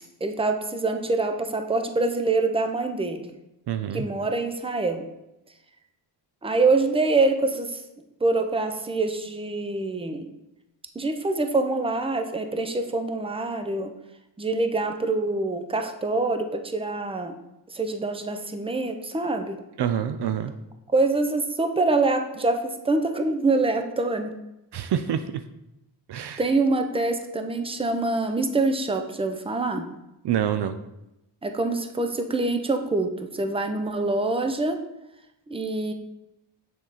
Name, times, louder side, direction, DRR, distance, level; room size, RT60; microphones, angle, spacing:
voice 1, 0.2-3.3 3.9-5.1 6.4-7.8 8.2-10.2 10.9-13.9 14.4-17.3 17.7-19.6 20.9-24.3 26.4-29.8 31.4-34.8 35.5-35.9, right 3 dB, 10° right, 6 dB, 0.7 m, -25 dB
voice 2, 3.7-4.1 19.8-20.5 24.7-25.4 26.1-26.4 30.2-30.8, right 9 dB, 60° right, 9 dB, 0.5 m, -26 dB
6.4 x 4.6 x 4.1 m, 0.91 s
cardioid pair, 70°, 46 cm